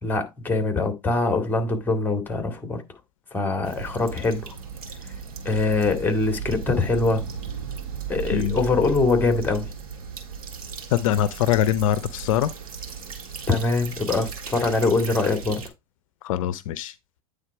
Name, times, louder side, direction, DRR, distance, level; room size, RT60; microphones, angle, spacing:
voice 1, 0.0-2.8 3.3-4.5 5.4-7.2 8.1-9.7 13.5-15.6, left 3 dB, 10° left, 2.2 m, -23 dB
sound 1, 3.7-15.7, right 7 dB, 80° right, 1.9 m, -36 dB
voice 2, 10.9-12.5 16.2-16.9, left 11 dB, 65° left, 0.6 m, -23 dB
9.0 x 3.4 x 4.6 m
hypercardioid pair, 95°, 19 cm